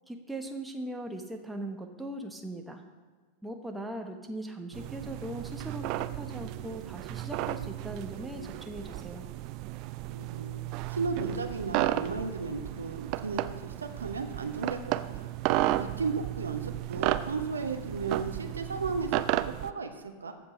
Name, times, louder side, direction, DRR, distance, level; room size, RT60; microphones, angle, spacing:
voice 1, 0.1-2.8 3.4-9.3, right 1 dB, 5° right, 3 dB, 1.2 m, -39 dB
sound 1, 4.7-19.7, right 15 dB, 40° right, 0.4 m, -34 dB
voice 2, 10.1-10.5 10.9-15.3 15.8-20.3, right 4 dB, 75° right, 5 dB, 1.1 m, -35 dB
15.0 x 5.2 x 6.3 m, 1.5 s
figure-of-eight pair, 90°, 0 cm